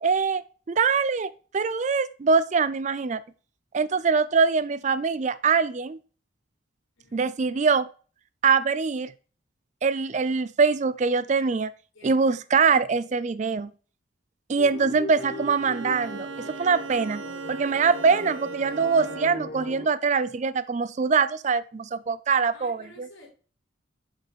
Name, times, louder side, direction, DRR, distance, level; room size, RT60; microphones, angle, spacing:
voice 1, 0.0-0.4 0.7-3.2 3.7-6.0 7.1-7.9 8.4-9.1 9.8-11.7 12.0-13.7 14.5-17.2 17.5-23.1, right 5 dB, 35° right, 17 dB, 0.4 m, -23 dB
voice 2, 7.0-7.3 11.9-12.7 22.5-23.3, left 1 dB, 70° left, 1 dB, 3.7 m, -52 dB
sound 1, 14.5-19.9, left 2 dB, 30° left, 1.6 m, -39 dB
Bowed string instrument, 15.2-19.6, right 4 dB, 70° right, 0.9 m, -38 dB
7.4 x 5.4 x 5.1 m, 0.39 s
head